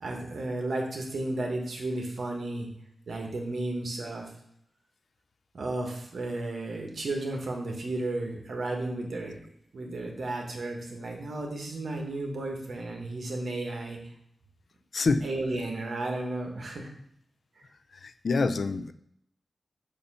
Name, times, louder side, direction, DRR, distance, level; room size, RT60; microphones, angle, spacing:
voice 1, 0.0-2.7 3.1-4.3 5.5-9.3 9.7-14.0 15.2-16.9 17.6-17.7, right 2 dB, 65° right, 1 dB, 1.2 m, -33 dB
voice 2, 14.9-15.2 18.0-18.9, left 3 dB, 55° left, 12 dB, 0.3 m, -26 dB
6.9 x 2.8 x 5.4 m, 0.72 s
wide cardioid pair, 150°, 0 cm